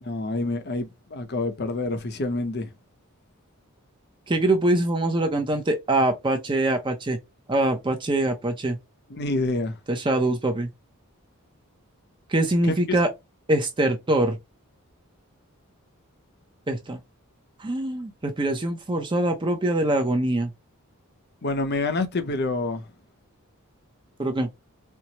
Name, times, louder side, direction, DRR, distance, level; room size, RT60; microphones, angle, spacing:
voice 1, 0.0-2.7 9.1-9.8 12.7-13.0 21.4-22.8, left 2 dB, 50° left, 0.7 m, -27 dB
voice 2, 4.3-7.2 7.5-8.8 9.9-10.7 12.3-13.1 13.5-14.4 16.7-17.0 17.6-20.5 24.2-24.5, right 1 dB, 20° right, 0.5 m, -23 dB
4.5 x 2.0 x 2.8 m
head